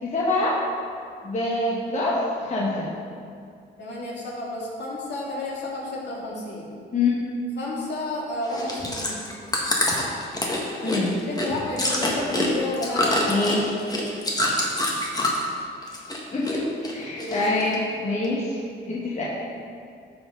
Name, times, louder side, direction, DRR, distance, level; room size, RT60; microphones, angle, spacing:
voice 1, 0.0-0.6 1.2-2.9 6.9-7.2 10.8-11.1 13.3-13.6 16.3-16.6 16.9-18.6 18.9-19.2, left 2 dB, 35° left, -6 dB, 1.5 m, -25 dB
voice 2, 3.8-6.7 7.6-9.2 10.8-11.0 11.3-13.4 17.1-17.4, left 2 dB, 60° left, -4 dB, 2.2 m, -31 dB
Chewing mastication, 8.5-15.5 15.8-16.6 16.8-17.8 18.2-18.3, left 1 dB, 20° left, 1.5 m, -26 dB
13.0 x 4.4 x 3.9 m, 2.3 s
cardioid pair, 90°, 20 cm